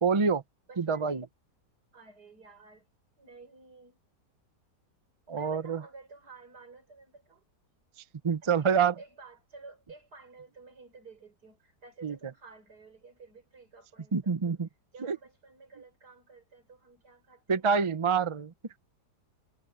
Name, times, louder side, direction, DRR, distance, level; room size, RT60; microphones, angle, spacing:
voice 1, 0.0-0.4 0.8-1.3 5.3-5.8 8.2-8.9 12.0-12.2 14.1-14.7 15.0-15.2 17.5-18.5, right 6 dB, 40° right, 0.4 m, -26 dB
voice 2, 0.7-1.2 1.9-2.9 3.2-4.0 5.3-7.4 8.4-14.6 14.9-17.7, right 3 dB, 65° right, 6.0 m, -53 dB
omnidirectional pair, 1.9 m